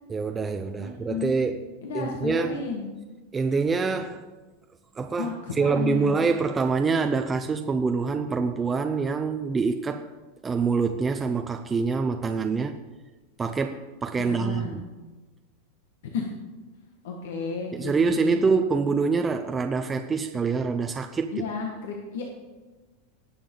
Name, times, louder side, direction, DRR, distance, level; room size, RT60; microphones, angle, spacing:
voice 1, 0.1-1.6 1.9-2.6 3.3-4.2 5.0-10.1 10.4-12.8 13.4-14.9 17.7-21.4, right 4 dB, 15° right, 6 dB, 0.5 m, -25 dB
voice 2, 0.8-1.3 1.8-2.9 5.2-6.2 14.2-14.8 16.1-16.3 17.0-18.4 21.3-22.2, left 5 dB, 80° left, 0 dB, 1.7 m, -32 dB
19.0 x 7.0 x 3.9 m, 1.2 s
supercardioid pair, 135°, 0 cm